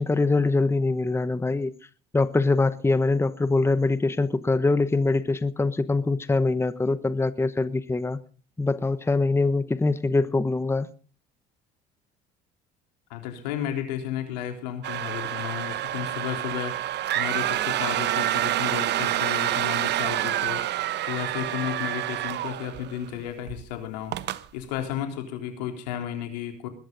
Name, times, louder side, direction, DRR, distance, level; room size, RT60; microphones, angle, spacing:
voice 1, 0.0-1.7 2.1-8.2 8.6-10.9, left 3 dB, 10° left, 1.0 m, -23 dB
voice 2, 13.1-16.9 17.1-24.1 24.5-26.7, left 10 dB, 85° left, 3.7 m, -33 dB
sound 1, 14.8-23.1 23.5-23.6 24.1-24.4, right 13 dB, 55° right, 1.0 m, -28 dB
21.0 x 12.5 x 3.9 m
supercardioid pair, 80°, 21 cm